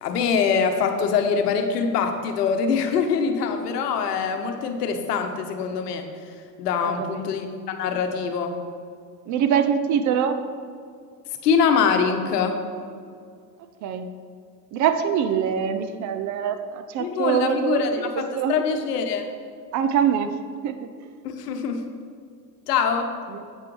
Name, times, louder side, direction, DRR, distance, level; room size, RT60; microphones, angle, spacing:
voice 1, 0.0-6.1 6.6-8.6 11.4-12.6 17.0-19.3 21.2-21.9 22.7-23.1, left 6 dB, 70° left, 6 dB, 1.1 m, -24 dB
voice 2, 9.3-10.4 13.8-14.1 14.7-17.8 18.3-18.5 19.7-20.3 20.6-20.9 23.3-23.4, right 8 dB, 35° right, 8 dB, 0.6 m, -23 dB
8.4 x 8.2 x 3.2 m, 2.2 s
hypercardioid pair, 80°, 49 cm